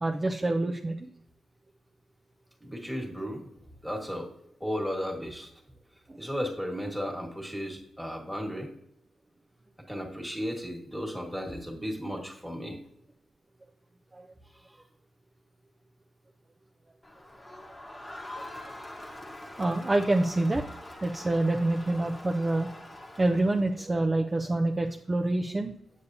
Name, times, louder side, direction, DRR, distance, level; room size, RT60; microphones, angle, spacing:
voice 1, 0.0-1.1 6.1-6.2 14.1-14.3 19.6-20.6 21.0-22.7 23.2-25.7, right 2 dB, 25° right, 2 dB, 0.4 m, -26 dB
voice 2, 2.6-3.5 3.8-4.3 4.6-5.5 6.2-8.7 9.9-12.8 14.5-14.8, equal, ahead, 0 dB, 1.5 m, -34 dB
Crowd, 17.0-23.9, left 1 dB, 15° left, 1.1 m, -44 dB
8.2 x 6.8 x 2.7 m, 0.74 s
cardioid pair, 110°, 0 cm